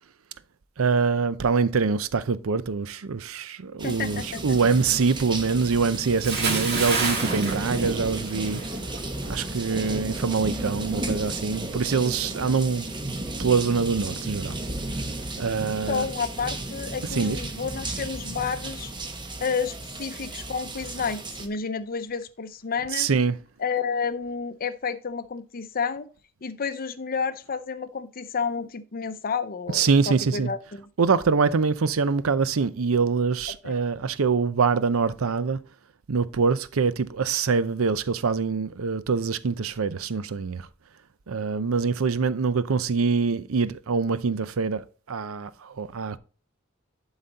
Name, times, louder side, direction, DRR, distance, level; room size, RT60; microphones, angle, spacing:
voice 1, 0.8-8.6 9.3-13.1 13.4-14.6 15.4-16.0 17.1-17.4 22.9-23.4 29.7-30.5 31.0-35.6 36.1-40.7 41.3-46.2, right 5 dB, 80° right, 0.6 m, -24 dB
voice 2, 3.8-4.6 15.9-18.9 19.4-23.1 23.6-26.1 26.4-30.9 33.6-33.8, left 5 dB, 45° left, 0.6 m, -30 dB
sound 1, 3.8-21.5, right 2 dB, 20° right, 1.0 m, -34 dB
Bathtub (filling or washing) / Splash splatter, 6.2-8.7 9.0-9.3, right 4 dB, 50° right, 2.3 m, -28 dB
11.0 x 4.1 x 4.0 m
head